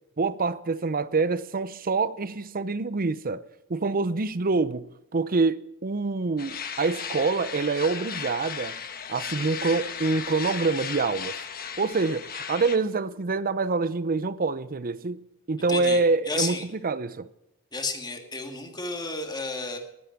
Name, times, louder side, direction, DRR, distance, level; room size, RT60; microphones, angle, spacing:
voice 1, 0.2-3.4 3.7-4.8 5.1-8.8 9.1-11.4 11.8-17.3, right 3 dB, 40° right, 0.6 m, -26 dB
sound 1, 6.4-12.8, left 7 dB, 45° left, 1.3 m, -36 dB
voice 2, 15.7-16.0 16.3-16.6 17.7-19.8, left 3 dB, 20° left, 2.1 m, -31 dB
19.5 x 8.8 x 5.9 m
head